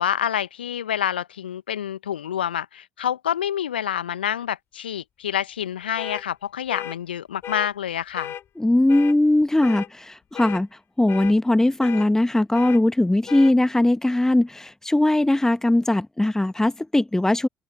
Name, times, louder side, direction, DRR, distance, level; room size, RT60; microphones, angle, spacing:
voice 1, 0.0-8.3, left 10 dB, 80° left, 1.4 m, -27 dB
sound 1, 6.0-6.2 6.7-7.0 7.4-7.7 8.2-8.4 8.9-9.2 9.6-9.9 10.3-10.6 11.1-11.3 11.8-12.1 12.5-12.8 13.3-13.5, left 10 dB, 50° left, 7.9 m, -34 dB
voice 2, 8.6-10.7 11.0-17.5, left 1 dB, 10° left, 1.4 m, -20 dB
figure-of-eight pair, 50°, 5 cm